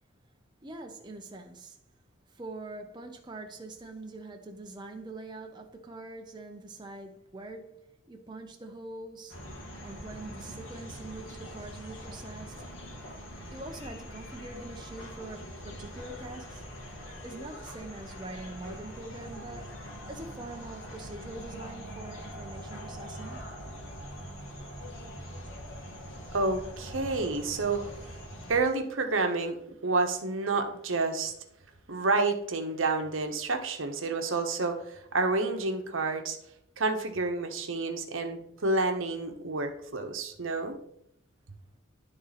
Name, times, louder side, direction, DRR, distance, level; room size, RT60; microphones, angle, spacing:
voice 1, 0.6-1.8 2.3-12.7 13.5-16.6 17.2-19.7 20.1-23.5, right 2 dB, 20° right, 0.7 m, -44 dB
sound 1, 9.3-28.6, equal, 70° left, 1.9 m, -43 dB
voice 2, 26.3-27.8 28.5-31.3 31.9-36.4 36.8-40.8, right 3 dB, 70° right, 1.0 m, -29 dB
11.0 x 3.8 x 4.1 m
head